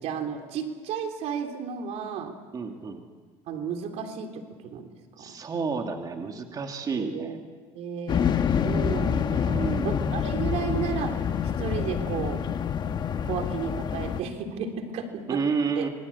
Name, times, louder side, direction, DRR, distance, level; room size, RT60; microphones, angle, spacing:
voice 1, 0.0-2.3 3.5-4.9 5.2-5.3 7.0-7.3 7.7-11.2 11.6-12.4 13.2-15.4 15.7-15.9, right 7 dB, 65° right, 5 dB, 3.4 m, -33 dB
voice 2, 2.5-3.0 5.2-7.4 9.5-10.0 15.3-15.9, right 5 dB, 35° right, 3 dB, 2.7 m, -30 dB
sound 1, 8.1-14.2, left 7 dB, 40° left, 1.4 m, -27 dB
27.0 x 24.0 x 8.6 m, 1.5 s
cardioid pair, 110°, 12 cm